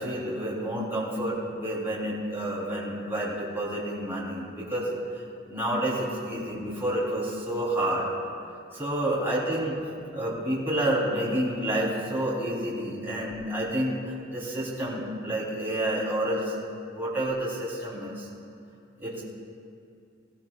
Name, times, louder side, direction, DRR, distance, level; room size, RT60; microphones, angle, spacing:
voice 1, 0.0-4.9 5.5-8.1 8.7-9.8 10.1-16.6 16.9-18.3 19.0-19.2, right 1 dB, 10° right, -7 dB, 3.1 m, -29 dB
20.0 x 16.0 x 2.3 m, 2.4 s
head